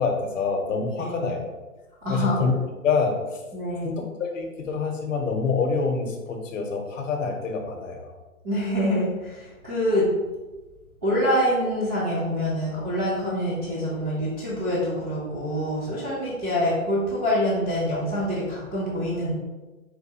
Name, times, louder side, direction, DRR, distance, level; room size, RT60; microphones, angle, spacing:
voice 1, 0.0-1.5 2.1-2.5 2.8-3.2 3.8-8.2, left 5 dB, 60° left, 3 dB, 1.0 m, -26 dB
voice 2, 2.0-2.4 3.5-3.9 8.4-10.1 11.0-19.3, equal, 10° right, -11 dB, 0.4 m, -25 dB
4.6 x 2.6 x 4.1 m, 1.2 s
hypercardioid pair, 130°, 43 cm